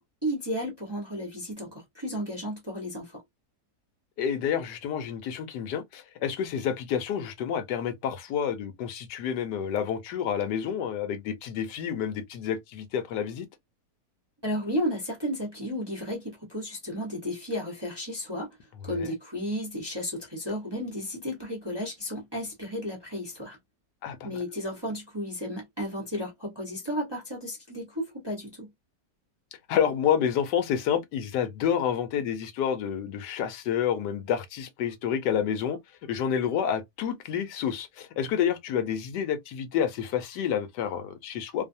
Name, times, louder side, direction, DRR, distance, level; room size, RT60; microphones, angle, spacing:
voice 1, 0.0-3.2 14.4-18.5 18.8-23.6 24.2-28.7, equal, 20° right, 0.7 m, -33 dB
voice 2, 4.2-13.5 18.9-19.1 24.0-24.4 29.7-41.7, left 8 dB, 80° left, 1.3 m, -29 dB
3.1 x 2.0 x 2.6 m
omnidirectional pair, 1.8 m